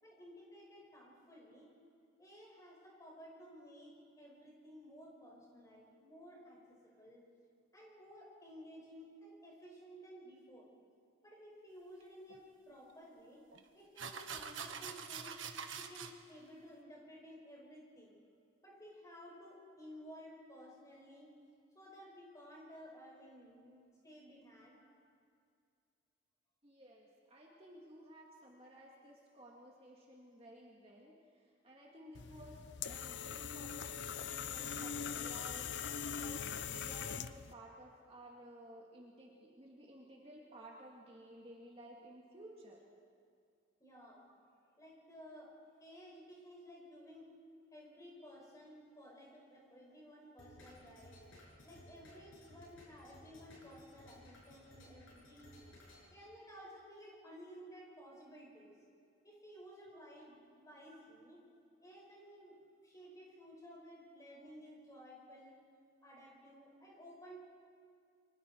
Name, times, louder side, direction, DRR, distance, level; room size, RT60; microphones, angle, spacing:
voice 1, 0.0-1.7 2.2-7.3 7.7-10.7 11.2-13.4 13.7-15.4 15.7-18.2 18.6-21.3 21.7-24.8 43.8-44.3 44.8-45.5 45.8-47.3 47.7-51.2 51.6-55.5 56.1-58.8 59.2-61.4 61.8-62.6 62.8-65.6 66.0-67.4, equal, 15° left, -3 dB, 5.6 m, -55 dB
sound 1, 12.3-12.4 13.5-13.6 14.0-16.1, right 6 dB, 70° right, 1.3 m, -45 dB
voice 2, 26.6-31.2 31.6-35.8 36.2-42.8 59.9-60.0 64.4-64.6 65.2-65.4, right 1 dB, 30° right, -2 dB, 2.1 m, -56 dB
sound 2, 32.1-37.5, left 7 dB, 60° left, 0.6 m, -42 dB
sound 3, 50.4-56.1, left 1 dB, 80° left, 7.6 m, -59 dB
29.0 x 24.5 x 4.6 m, 2.3 s
head